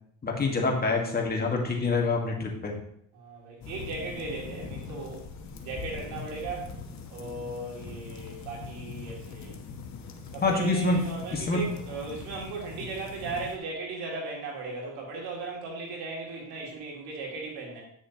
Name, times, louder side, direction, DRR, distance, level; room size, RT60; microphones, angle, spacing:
voice 1, 0.2-2.7 10.4-11.1 11.3-11.6, left 3 dB, 25° left, 0 dB, 1.7 m, -26 dB
voice 2, 3.1-5.3 5.6-6.8 7.1-9.6 10.3-17.8, right 3 dB, 85° right, -2 dB, 2.8 m, -37 dB
sound 1, 3.6-13.6, left 5 dB, 50° left, 1.2 m, -42 dB
9.6 x 6.4 x 3.0 m, 0.70 s
cardioid pair, 100°, 37 cm